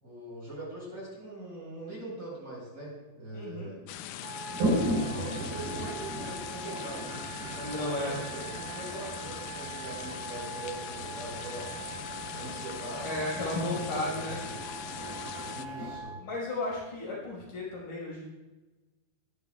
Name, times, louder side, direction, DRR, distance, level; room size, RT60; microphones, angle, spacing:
voice 1, 0.0-3.8 5.0-11.7 12.3-13.1 13.5-14.3 15.4-16.1, right 2 dB, 30° right, -4 dB, 5.2 m, -42 dB
voice 2, 3.3-3.7 7.6-8.2 13.0-14.4 16.2-18.3, left 2 dB, 65° left, -5 dB, 7.1 m, -34 dB
sound 1, 3.9-15.7, left 12 dB, 85° left, 1.8 m, -41 dB
Wind instrument woodwind instrument, 4.2-16.2, right 5 dB, 65° right, 2.2 m, -43 dB
Toilet flush, 4.5-16.0, equal, 85° right, 6.2 m, -37 dB
22.0 x 12.0 x 2.4 m, 1.1 s
omnidirectional pair, 4.3 m